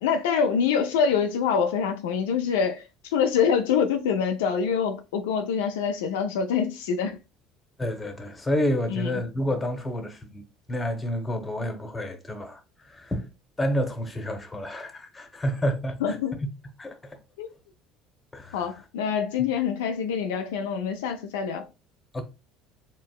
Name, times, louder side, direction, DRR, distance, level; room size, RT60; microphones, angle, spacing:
voice 1, 0.0-7.2 8.9-9.1 16.0-16.3 17.4-17.5 18.5-21.7, left 7 dB, 80° left, 0.3 m, -25 dB
voice 2, 7.8-10.4 10.7-13.3 13.6-16.5 16.8-17.2 18.3-18.6 22.1-22.2, equal, 20° left, 0.9 m, -29 dB
4.1 x 2.0 x 2.3 m
hypercardioid pair, 65°, 0 cm